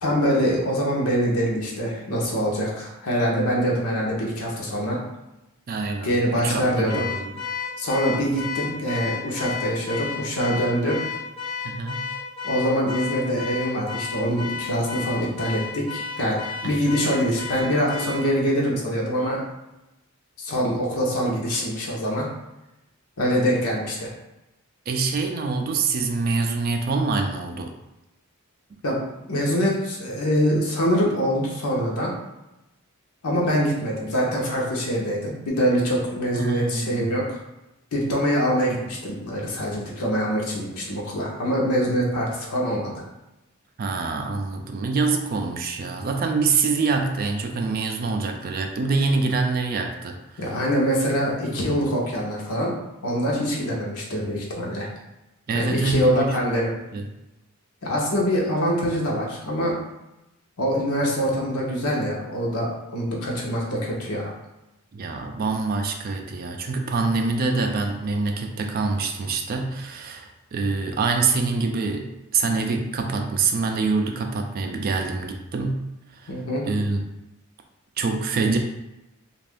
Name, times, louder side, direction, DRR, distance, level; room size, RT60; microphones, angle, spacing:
voice 1, 0.0-5.0 6.0-7.0 7.8-11.0 12.4-16.4 16.6-19.4 20.4-22.2 23.2-24.1 28.8-29.0 29.3-32.1 33.2-37.4 37.9-43.0 50.4-52.7 53.0-54.9 55.5-56.7 57.8-59.8 60.6-64.3 76.3-76.6, equal, 80° left, -3 dB, 0.8 m, -24 dB
voice 2, 5.7-6.6 6.9-7.3 11.6-12.1 16.6-16.7 24.9-27.7 36.3-37.1 43.8-50.4 55.5-56.4 56.9-57.1 64.9-75.8 76.1-76.3 76.6-77.0 78.0-78.6, right 4 dB, 40° right, 3 dB, 0.3 m, -25 dB
Car / Alarm, 6.9-18.3, left 5 dB, 25° left, 0.5 m, -32 dB
2.5 x 2.4 x 3.4 m, 0.95 s
head